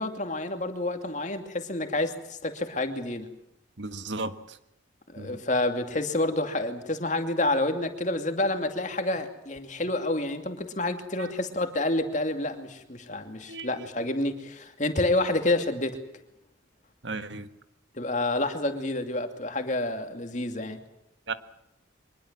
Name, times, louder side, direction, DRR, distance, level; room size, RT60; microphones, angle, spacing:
voice 1, 0.0-3.3 5.1-16.0 18.0-20.8, left 2 dB, 40° left, 7 dB, 2.6 m, -28 dB
voice 2, 3.8-4.6 5.2-5.4 11.2-11.3 13.5-13.8 17.0-17.5 21.3-21.4, right 3 dB, 70° right, 10 dB, 1.7 m, -35 dB
24.5 x 21.0 x 7.4 m, 0.80 s
head